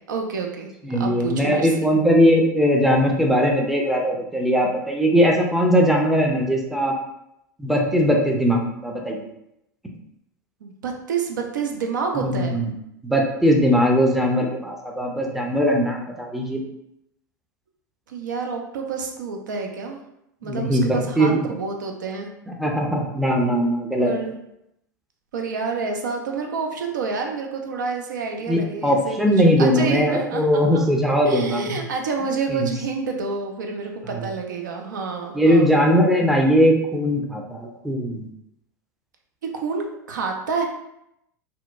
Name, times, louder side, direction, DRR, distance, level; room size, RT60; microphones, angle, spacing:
voice 1, 0.0-1.7 10.6-12.6 18.1-20.0 20.4-22.3 24.0-24.4 25.3-29.2 29.6-30.9 31.2-35.7 39.5-40.6, right 4 dB, 75° right, 3 dB, 0.4 m, -28 dB
voice 2, 0.8-6.9 7.6-9.3 12.2-12.7 13.0-16.6 20.4-21.5 22.5-24.1 28.5-31.6 32.5-32.7 35.3-38.3, equal, ahead, 0 dB, 0.4 m, -20 dB
2.7 x 2.1 x 2.4 m, 0.81 s
figure-of-eight pair, 85°, 10 cm